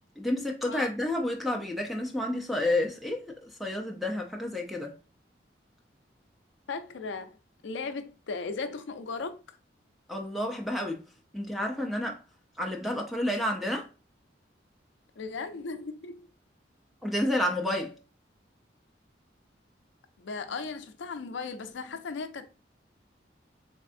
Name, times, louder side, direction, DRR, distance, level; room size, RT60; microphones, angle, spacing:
voice 1, 0.2-4.9 10.1-11.0 11.3-12.2 12.6-13.9 17.0-18.0, left 1 dB, ahead, 0.5 m, -30 dB
voice 2, 6.7-7.4 7.6-9.6 15.2-16.3 20.2-22.5, left 4 dB, 75° left, 0.5 m, -37 dB
3.5 x 3.2 x 2.5 m
head